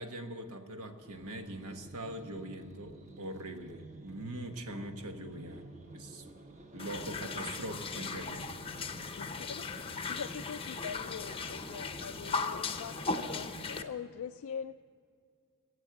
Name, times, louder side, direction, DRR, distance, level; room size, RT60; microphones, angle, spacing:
voice 1, 0.0-6.2 6.7-8.5, right 1 dB, 75° right, 6 dB, 1.3 m, -42 dB
sound 1, 1.0-13.7, right 2 dB, 35° right, 1.1 m, -52 dB
sound 2, 6.8-13.8, left 4 dB, 25° left, 0.7 m, -38 dB
voice 2, 9.2-14.8, left 7 dB, 70° left, 7 dB, 0.4 m, -43 dB
15.5 x 8.1 x 7.8 m, 2.2 s
head